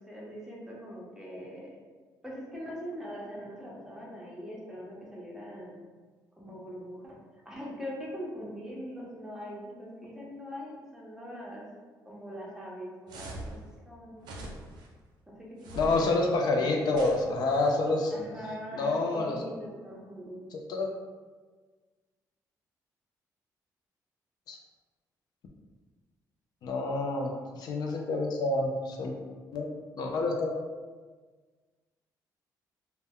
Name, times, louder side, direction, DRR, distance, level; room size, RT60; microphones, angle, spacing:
voice 1, 0.0-1.8 2.2-5.8 6.4-7.1 7.4-11.7 12.0-13.6 13.8-14.4 15.3-16.2 18.1-20.5, equal, 5° right, -4 dB, 0.7 m, -42 dB
sound 1, 13.1-13.6 14.2-14.9 15.6-16.2 16.9-17.7, right 1 dB, 80° right, 0.4 m, -42 dB
voice 2, 15.8-18.2 18.7-19.4 20.5-20.9 24.5-24.6 26.6-29.1 29.5-29.7 30.0-30.5, left 2 dB, 70° left, 1 dB, 0.4 m, -28 dB
2.1 x 2.1 x 3.5 m, 1.4 s
cardioid pair, 90°, 7 cm